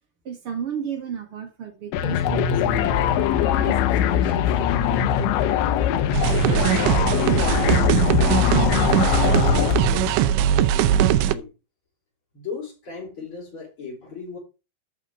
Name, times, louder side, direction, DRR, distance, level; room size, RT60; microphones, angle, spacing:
voice 1, 0.3-5.5, right 8 dB, 45° right, 2.0 m, -35 dB
sound 1, 1.9-10.2, left 9 dB, 90° left, 3.2 m, -21 dB
sound 2, 6.1-11.4, right 11 dB, 85° right, 2.9 m, -20 dB
voice 2, 6.2-7.9 8.2-11.5 12.3-14.4, left 5 dB, 30° left, 5.4 m, -37 dB
10.0 x 6.5 x 5.1 m
omnidirectional pair, 5.1 m